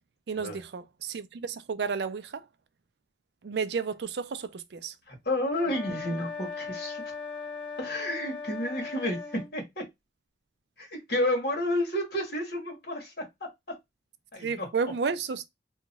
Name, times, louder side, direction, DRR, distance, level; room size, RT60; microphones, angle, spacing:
voice 1, 0.3-2.5 3.4-4.9 14.4-15.5, right 5 dB, 65° right, 0.4 m, -32 dB
voice 2, 5.1-7.1 7.8-9.8 10.8-13.8 14.3-14.7, left 1 dB, 55° left, 1.5 m, -31 dB
sound 1, 5.5-9.5, left 5 dB, 10° left, 0.8 m, -38 dB
2.9 x 2.4 x 3.9 m
head